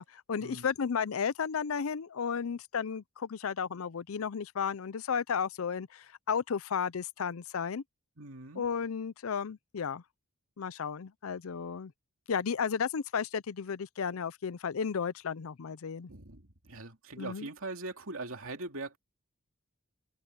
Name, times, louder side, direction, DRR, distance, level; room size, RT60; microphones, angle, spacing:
voice 1, 0.0-7.8 8.5-10.0 10.6-11.9 12.3-16.1 17.2-17.5, left 6 dB, 80° left, 0.5 m, -33 dB
voice 2, 8.2-8.6 16.1-19.0, right 2 dB, 75° right, 2.6 m, -41 dB
head